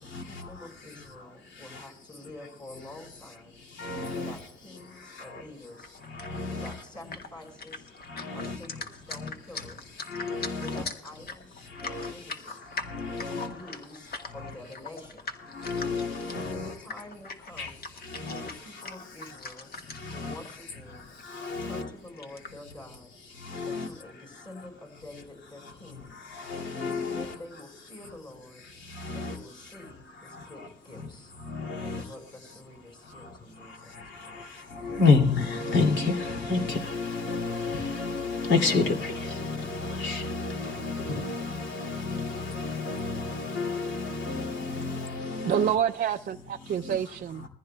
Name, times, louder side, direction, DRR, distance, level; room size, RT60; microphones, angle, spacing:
voice 1, 0.0-3.6 4.1-5.9 6.5-7.9 8.3-9.9 10.6-11.5 11.9-12.7 13.3-15.3 16.6-17.8 18.3-19.7 20.1-21.1 21.6-23.1 23.7-26.2 27.0-28.6 29.1-31.3 31.8-35.0, left 1 dB, 25° left, 5.1 m, -48 dB
voice 2, 3.8-4.3 6.2-6.7 8.1-8.6 9.2-9.3 10.1-10.8 11.8-12.1 12.9-13.5 15.5-16.7 17.6-17.7 18.1-18.5 20.0-20.3 21.3-21.9 23.5-23.9 26.5-27.3 29.0-29.3 31.5-32.0 34.8-45.7 46.8-47.0, left 4 dB, 70° left, 2.6 m, -29 dB
sound 1, 5.8-20.2 20.4-20.6 20.9-21.7 22.1-22.5, left 4 dB, 50° left, 1.5 m, -41 dB
voice 3, 45.4-47.5, right 9 dB, 50° right, 0.4 m, -27 dB
21.5 x 15.0 x 2.3 m
cardioid pair, 90°, 20 cm